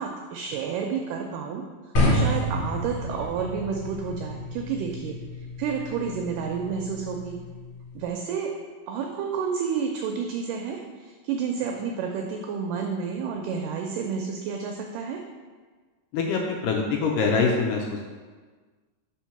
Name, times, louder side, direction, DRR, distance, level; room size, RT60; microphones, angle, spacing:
voice 1, 0.0-1.6 2.0-5.2 5.6-7.4 8.0-8.5 8.9-15.2, right 6 dB, 80° right, 2 dB, 2.0 m, -30 dB
sound 1, 1.9-8.1, left 1 dB, 60° left, 1.3 m, -29 dB
voice 2, 16.1-18.0, left 4 dB, 80° left, 1 dB, 2.0 m, -24 dB
4.6 x 4.4 x 5.7 m, 1.4 s
omnidirectional pair, 4.1 m